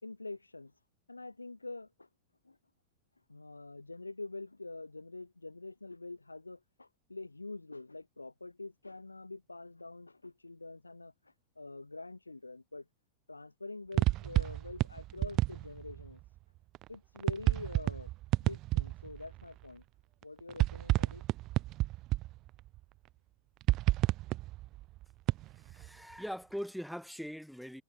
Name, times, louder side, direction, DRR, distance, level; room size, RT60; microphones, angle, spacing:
voice 1, 0.0-0.7 1.1-2.1 2.4-2.6 3.3-12.9 13.3-16.2 16.9-18.1 18.4-19.8 20.2-21.2, left 3 dB, 80° left, 1.8 m, -46 dB
sound 1, 13.9-16.1 16.7-19.4 20.2-22.8 23.6-25.9, right 17 dB, 35° right, 0.5 m, -30 dB
voice 2, 25.7-27.8, equal, ahead, 1.4 m, -41 dB
figure-of-eight pair, 90°, 0 cm